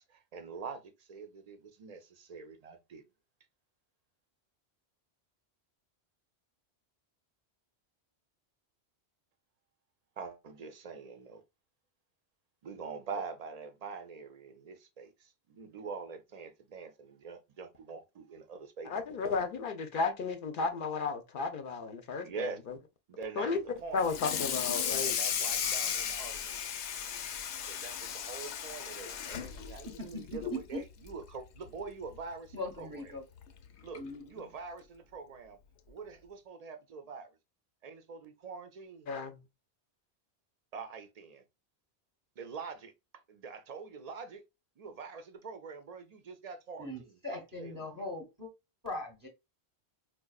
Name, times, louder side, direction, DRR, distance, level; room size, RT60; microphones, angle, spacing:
voice 1, 0.1-3.0 10.2-11.4 12.6-18.9 22.2-22.6 23.1-23.5 23.8-24.0 25.0-26.6 27.7-33.2 33.8-35.6 35.9-37.4 37.8-39.1 40.7-41.4 42.4-42.9 43.3-44.4 44.8-48.0, right 5 dB, 50° right, 0.5 m, -44 dB
voice 2, 18.9-22.8 23.4-23.6 23.9-25.2 39.1-39.4, left 4 dB, 60° left, 0.7 m, -33 dB
Water tap faucet / Sink (filling or washing), 24.0-30.7 31.1-31.3 31.7-31.8 32.2-32.3 33.4-33.5 33.9-34.2, left 8 dB, 85° left, 0.9 m, -35 dB
voice 3, 29.7-30.6 32.5-33.2 34.0-34.5 46.8-48.5 48.8-49.3, left 1 dB, 20° right, 0.7 m, -40 dB
4.7 x 2.2 x 2.2 m
omnidirectional pair, 1.1 m